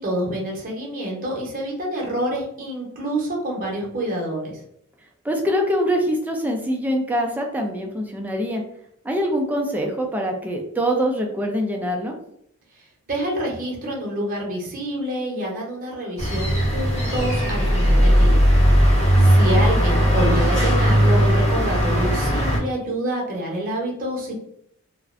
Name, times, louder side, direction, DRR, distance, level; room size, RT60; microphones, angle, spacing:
voice 1, 0.0-4.6 12.7-18.5 18.8-18.9 19.2-24.3, right 1 dB, 40° right, -2 dB, 0.7 m, -27 dB
voice 2, 5.2-8.6 9.0-12.1, equal, 10° right, 1 dB, 0.3 m, -24 dB
sound 1, 16.2-22.6, equal, 30° left, 0.9 m, -17 dB
2.4 x 2.1 x 2.4 m, 0.73 s
head